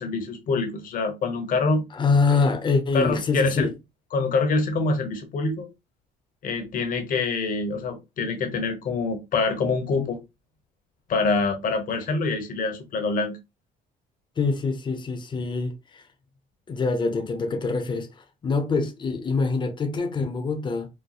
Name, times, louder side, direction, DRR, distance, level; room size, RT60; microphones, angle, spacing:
voice 1, 0.0-1.8 2.9-3.7 4.1-5.7 6.4-10.2 11.1-13.4, left 3 dB, 55° left, 1.0 m, -25 dB
voice 2, 1.9-3.7 14.4-16.0 16.7-20.9, left 4 dB, 25° left, 0.7 m, -25 dB
4.2 x 2.2 x 2.3 m
cardioid pair, 110°, 17 cm